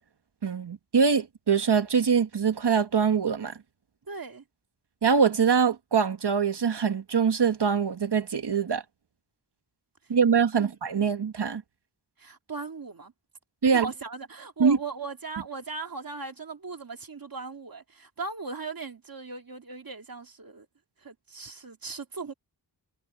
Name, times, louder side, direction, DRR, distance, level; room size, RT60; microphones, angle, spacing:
voice 1, 0.4-3.6 5.0-8.8 10.1-11.6 13.6-13.9 14.6-14.8, right 6 dB, 70° right, 1.4 m, -23 dB
voice 2, 4.0-4.4 10.0-10.1 10.6-11.1 12.2-13.1 13.7-20.7 21.0-22.3, right 4 dB, 55° right, 2.2 m, -38 dB
wide cardioid pair, 60°, 41 cm